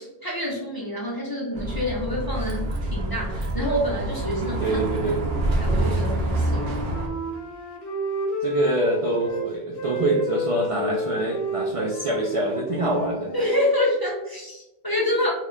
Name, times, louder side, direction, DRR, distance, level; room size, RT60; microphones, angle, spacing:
voice 1, 0.2-4.8 5.6-6.7 13.3-15.3, left 1 dB, 30° left, -4 dB, 0.5 m, -27 dB
Bus, 1.5-7.1, right 2 dB, 75° right, 0.8 m, -26 dB
voice 2, 4.6-5.2 8.4-13.3 15.1-15.2, right 2 dB, 55° right, -1 dB, 0.3 m, -25 dB
Wind instrument woodwind instrument, 6.1-9.4 9.7-13.6, equal, 70° left, 0.8 m, -31 dB
2.8 x 2.1 x 3.6 m, 0.94 s
omnidirectional pair, 1.1 m